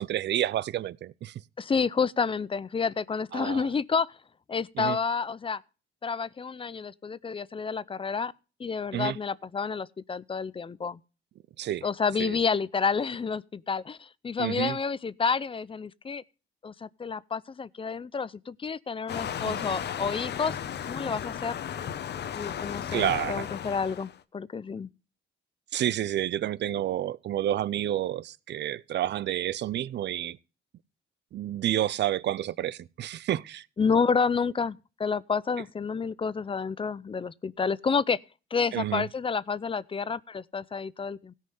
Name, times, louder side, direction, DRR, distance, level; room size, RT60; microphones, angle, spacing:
voice 1, 0.0-1.3 3.3-3.7 4.8-5.0 8.9-9.2 11.6-11.8 12.2-12.4 14.4-14.8 19.5-19.6 22.9-23.5 25.7-30.4 31.3-33.6 38.7-39.0, right 12 dB, 60° right, 0.5 m, -29 dB
voice 2, 1.6-4.1 4.5-5.6 6.0-8.3 8.6-11.0 11.8-16.2 16.6-20.6 20.8-21.6 22.3-24.9 33.8-38.2 38.5-41.3, left 5 dB, 25° left, 0.5 m, -29 dB
Waves surf, 19.1-24.2, left 9 dB, 60° left, 0.9 m, -35 dB
16.5 x 5.6 x 5.4 m
cardioid pair, 90°, 20 cm